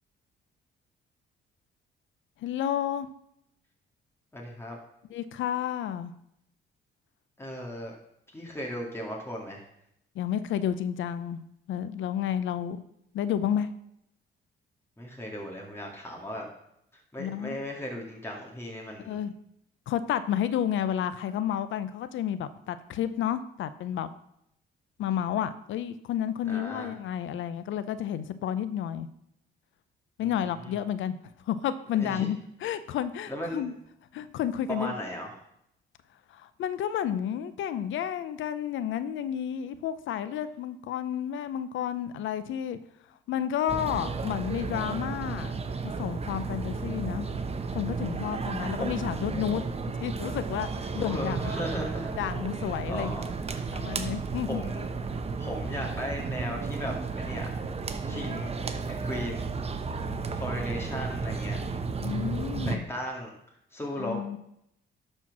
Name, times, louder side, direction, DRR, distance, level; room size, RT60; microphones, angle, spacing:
voice 1, 2.4-3.1 5.1-6.1 10.1-11.4 11.7-12.8 13.1-13.7 17.2-17.6 19.0-19.3 19.9-24.1 25.0-29.1 30.2-31.2 31.5-33.7 34.1-34.9 36.3-42.8 43.3-45.6 45.8-47.3 47.7-49.6 50.0-51.5 52.2-53.1 53.7-54.6 58.1-58.4 62.0-62.9 64.0-64.4, left 10 dB, 75° left, 13 dB, 0.7 m, -31 dB
voice 2, 4.3-4.8 7.4-7.9 8.3-9.6 15.0-16.5 17.1-19.2 26.5-26.9 30.6-30.7 32.0-32.3 33.3-33.6 34.7-35.3 48.8-49.1 50.9-52.2 52.9-53.3 53.5-53.7 54.5-54.9 55.4-57.5 58.1-58.5 58.9-59.5 60.3-61.6 62.7-63.4 63.7-64.2, equal, 10° left, -1 dB, 2.1 m, -36 dB
sound 1, 43.7-62.8, right 4 dB, 30° right, 0.9 m, -33 dB
12.0 x 4.5 x 6.0 m, 0.76 s
cardioid pair, 90°, 20 cm